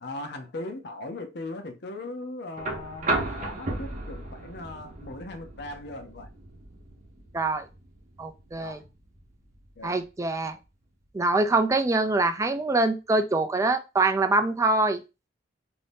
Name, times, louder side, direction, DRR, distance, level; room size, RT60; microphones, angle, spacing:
voice 1, 0.0-6.3 8.6-8.9 9.8-10.0, left 2 dB, 65° left, 0.6 m, -39 dB
sound 1, 2.6-10.6 12.0-12.1, right 2 dB, 45° right, 0.7 m, -35 dB
voice 2, 7.3-7.7 8.2-8.8 9.8-10.6 11.1-15.0, right 2 dB, 15° right, 0.3 m, -24 dB
2.6 x 2.6 x 3.4 m
head